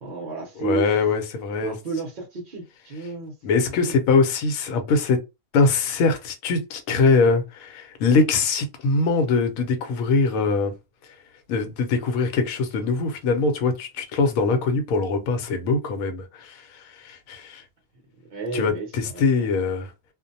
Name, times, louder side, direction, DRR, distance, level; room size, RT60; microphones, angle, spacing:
voice 1, 0.0-0.9 1.6-3.3 3.8-4.0 18.3-19.5, right 4 dB, 50° right, 0.6 m, -32 dB
voice 2, 0.6-1.7 3.4-5.2 5.5-10.7 11.5-17.6 18.5-19.9, left 4 dB, 70° left, 1.0 m, -22 dB
2.5 x 2.1 x 2.6 m
omnidirectional pair, 1.6 m